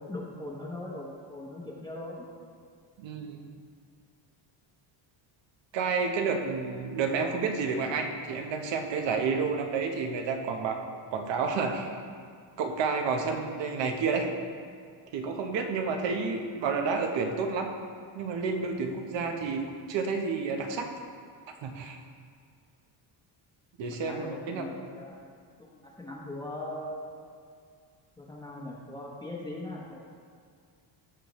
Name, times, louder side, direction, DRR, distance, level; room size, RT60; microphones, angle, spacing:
voice 1, 0.0-2.3 24.0-25.2 25.6-27.2 28.2-29.9, left 1 dB, 10° left, -4 dB, 1.0 m, -40 dB
voice 2, 3.0-3.5 5.7-10.8 11.1-12.0 12.6-14.3 15.1-17.7 18.1-20.9 21.6-22.0 23.8-24.7, right 5 dB, 60° right, 4 dB, 1.1 m, -30 dB
14.0 x 6.5 x 3.1 m, 2.2 s
cardioid pair, 150°, 49 cm